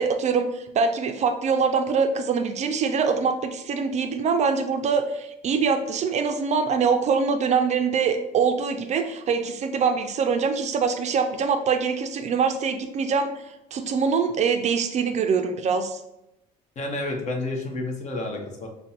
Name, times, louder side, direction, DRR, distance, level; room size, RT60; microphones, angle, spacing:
voice 1, 0.0-13.4 13.7-16.0, right 5 dB, 45° right, 7 dB, 0.4 m, -24 dB
voice 2, 16.8-18.7, left 2 dB, 45° left, 2 dB, 0.8 m, -30 dB
5.1 x 2.2 x 2.8 m, 0.89 s
cardioid pair, 110°, 17 cm